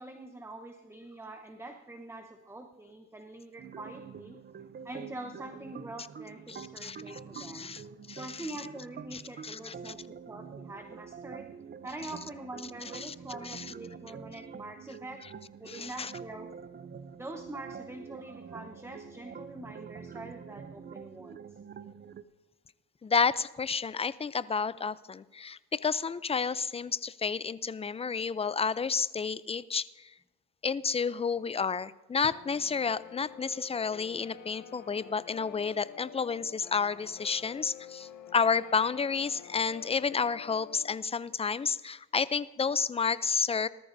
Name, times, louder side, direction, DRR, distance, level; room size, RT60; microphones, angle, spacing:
voice 1, 0.0-4.4 4.8-7.7 8.2-11.5 11.8-15.2 15.6-16.5 17.2-21.4, right 2 dB, 10° right, 5 dB, 1.0 m, -44 dB
sound 1, 3.6-22.2, right 6 dB, 35° right, 0.6 m, -46 dB
voice 2, 6.5-7.8 8.1-8.5 9.1-9.9 13.0-13.1 13.4-13.6 15.7-16.1 23.0-30.1 30.6-43.7, left 5 dB, 20° left, 17 dB, 0.4 m, -31 dB
Guitar, 32.3-41.0, left 9 dB, 80° left, 1.1 m, -49 dB
19.0 x 13.5 x 2.7 m, 1.1 s
cardioid pair, 90°, 30 cm